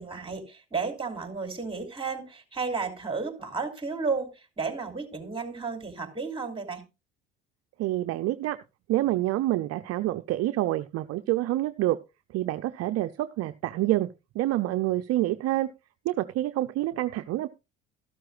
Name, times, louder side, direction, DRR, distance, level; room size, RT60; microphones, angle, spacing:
voice 1, 0.0-6.8, right 4 dB, 20° right, 3.1 m, -33 dB
voice 2, 7.8-8.6 8.9-12.0 12.3-14.1 14.3-15.7 16.0-17.5, right 15 dB, 55° right, 0.6 m, -27 dB
13.5 x 12.5 x 2.4 m
hypercardioid pair, 70°, 29 cm